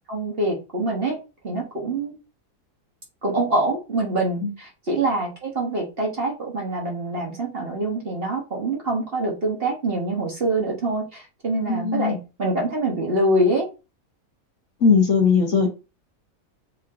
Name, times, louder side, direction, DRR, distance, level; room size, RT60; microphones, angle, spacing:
voice 1, 0.1-1.2 1.4-2.1 3.2-13.7, right 2 dB, 40° right, 1.5 m, -25 dB
voice 2, 11.7-12.2 14.8-15.7, left 5 dB, 55° left, 1.2 m, -19 dB
4.8 x 3.1 x 3.6 m
omnidirectional pair, 1.7 m